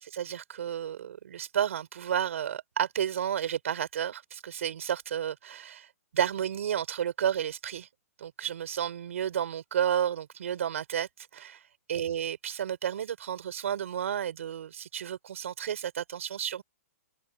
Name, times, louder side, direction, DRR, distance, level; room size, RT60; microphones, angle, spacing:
voice 1, 0.0-5.9 6.1-7.9 8.2-11.6 11.9-16.6, right 9 dB, 60° right, 4.8 m, -31 dB
hypercardioid pair, 170°, 8 cm